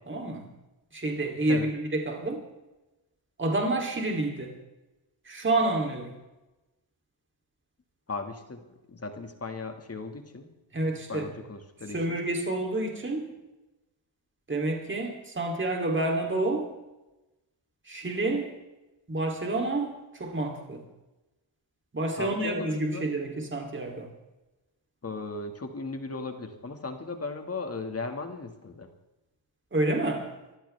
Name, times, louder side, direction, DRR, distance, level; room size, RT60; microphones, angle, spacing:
voice 1, 0.1-0.5 0.9-2.4 3.4-4.5 5.3-6.1 10.7-11.3 11.9-13.3 14.5-16.7 17.9-18.5 19.1-20.8 21.9-24.1 29.7-30.3, right 2 dB, 25° right, 2 dB, 3.1 m, -29 dB
voice 2, 8.1-10.5 11.1-12.2 22.2-23.0 25.0-28.9, left 3 dB, 30° left, 6 dB, 1.9 m, -37 dB
24.0 x 15.0 x 3.4 m, 1.0 s
cardioid pair, 100°, 48 cm